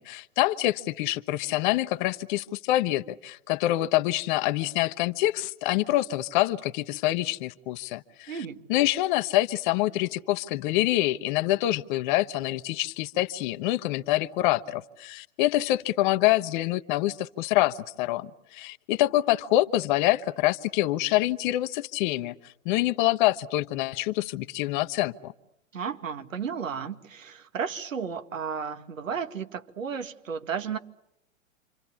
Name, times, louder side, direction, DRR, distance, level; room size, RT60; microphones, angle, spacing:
voice 1, 0.0-8.3 8.7-22.3 22.6-25.3, left 16 dB, 35° left, 12 dB, 1.1 m, -26 dB
voice 2, 8.3-8.6 25.7-30.8, right 6 dB, 75° right, 9 dB, 2.2 m, -33 dB
28.5 x 26.5 x 7.1 m, 0.80 s
figure-of-eight pair, 110°, 40 cm